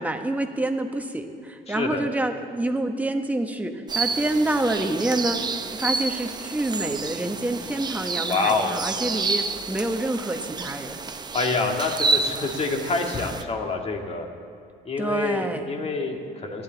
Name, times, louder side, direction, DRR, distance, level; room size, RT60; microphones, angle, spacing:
voice 1, 0.0-5.4 5.8-11.0 15.0-15.7, right 1 dB, 10° right, 5 dB, 1.2 m, -27 dB
voice 2, 1.7-2.0 8.3-8.8 11.3-14.3 14.9-16.6, left 3 dB, 35° left, 2 dB, 2.0 m, -27 dB
sound 1, 3.9-13.4, right 4 dB, 25° right, 0.7 m, -29 dB
29.0 x 10.5 x 4.0 m, 2.4 s
cardioid pair, 110°, 17 cm